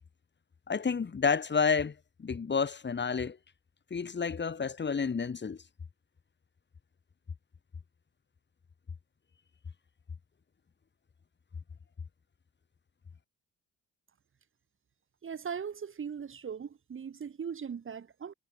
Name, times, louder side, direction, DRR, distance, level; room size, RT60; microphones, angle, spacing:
voice 1, 0.7-3.4 3.9-5.6, left 5 dB, 35° left, 4.0 m, -30 dB
voice 2, 15.2-18.3, right 7 dB, 45° right, 2.2 m, -39 dB
cardioid pair, 90°, 30 cm